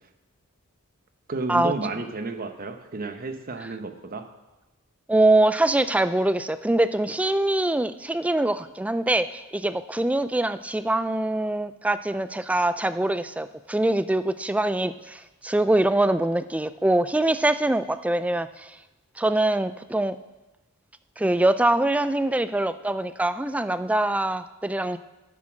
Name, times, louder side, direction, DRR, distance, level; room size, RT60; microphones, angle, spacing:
voice 1, 1.3-4.3, right 3 dB, 40° right, 7 dB, 0.9 m, -32 dB
voice 2, 5.1-18.7 19.2-20.2 21.2-25.0, right 1 dB, 5° right, 13 dB, 0.3 m, -23 dB
11.0 x 7.2 x 6.2 m, 1.1 s
head